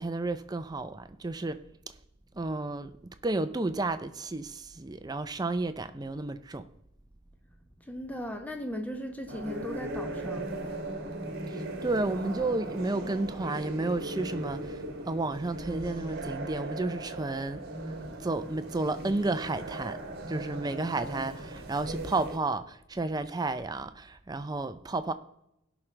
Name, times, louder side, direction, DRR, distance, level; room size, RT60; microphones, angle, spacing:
voice 1, 0.0-1.6 2.3-2.9 3.2-6.6 11.5-17.6 18.2-20.0 20.3-25.1, right 2 dB, 20° right, 0.5 m, -32 dB
voice 2, 7.8-10.5, equal, 5° left, 0.9 m, -37 dB
sound 1, 9.3-22.4, right 1 dB, 45° right, 1.3 m, -38 dB
17.5 x 6.0 x 3.3 m
head